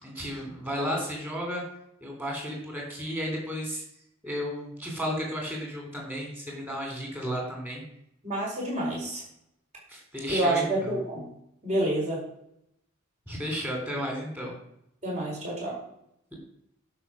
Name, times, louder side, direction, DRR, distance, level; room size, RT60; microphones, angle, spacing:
voice 1, 0.0-1.6 2.0-3.8 4.2-7.8 9.9-11.0 13.3-14.5, equal, 10° right, -1 dB, 3.4 m, -33 dB
voice 2, 8.2-9.2 10.3-11.3 11.6-12.2 15.0-15.8, right 1 dB, 35° right, -3 dB, 4.6 m, -28 dB
11.5 x 5.5 x 6.3 m, 0.78 s
head